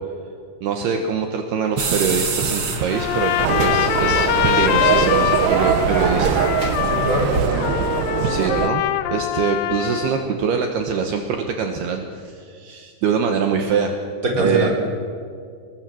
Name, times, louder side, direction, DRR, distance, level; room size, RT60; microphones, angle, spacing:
voice 1, 0.6-6.9 8.2-8.8 9.1-13.9 14.4-14.7, right 6 dB, 70° right, 4 dB, 3.1 m, -24 dB
sound 1, 1.8-7.5, right 4 dB, 40° right, 2.1 m, -27 dB
Trumpet, 2.9-10.3, left 12 dB, 75° left, 3.0 m, -23 dB
sound 2, 3.4-8.7, right 10 dB, 90° right, 3.4 m, -22 dB
voice 2, 6.8-7.8 14.2-14.7, right 1 dB, 20° right, -1 dB, 4.7 m, -22 dB
29.5 x 20.5 x 7.9 m, 2.3 s
omnidirectional pair, 5.3 m